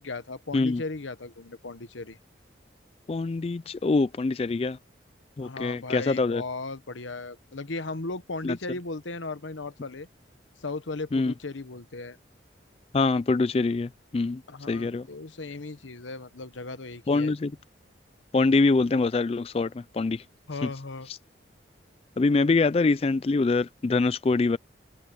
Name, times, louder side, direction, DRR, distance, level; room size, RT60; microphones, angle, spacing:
voice 1, 0.0-2.2 5.4-10.1 10.6-12.2 14.5-17.3 20.5-21.1, left 3 dB, 85° left, 1.1 m, -36 dB
voice 2, 3.1-4.8 5.4-6.4 8.4-8.6 11.1-11.3 12.9-14.4 14.7-15.1 17.1-17.5 18.3-20.2 20.6-20.7 22.2-24.6, left 3 dB, 30° left, 0.3 m, -24 dB
open air
head